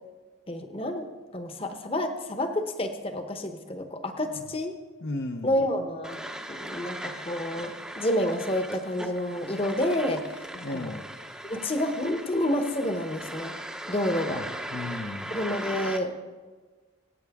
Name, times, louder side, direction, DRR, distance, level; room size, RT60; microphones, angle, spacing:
voice 1, 0.5-1.1 1.3-4.8 5.4-10.5 10.7-11.0 11.4-13.5 13.9-14.4 15.3-16.1, left 1 dB, 25° left, 6 dB, 0.9 m, -29 dB
voice 2, 5.0-5.6 10.5-11.0 14.3-15.3, left 2 dB, 55° left, 4 dB, 0.7 m, -35 dB
sound 1, 6.0-16.0, right 1 dB, 5° right, 0.7 m, -39 dB
22.5 x 9.3 x 3.6 m, 1.4 s
head